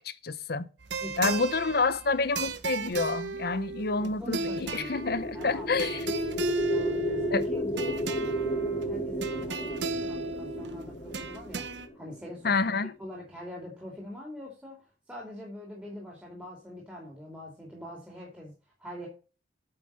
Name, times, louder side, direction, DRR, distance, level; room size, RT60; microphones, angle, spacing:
voice 1, 0.0-0.6 1.2-6.0 7.3-7.4 12.4-12.9, left 4 dB, 55° left, 0.8 m, -28 dB
sound 1, 0.8-11.9, right 3 dB, 75° right, 1.0 m, -35 dB
voice 2, 1.0-1.7 4.0-4.9 5.3-5.7 6.7-12.7 13.0-18.5 18.8-19.1, left 1 dB, 5° right, 2.6 m, -43 dB
sound 2, 4.3-12.4, right 1 dB, 30° left, 1.4 m, -33 dB
8.8 x 5.8 x 6.7 m
head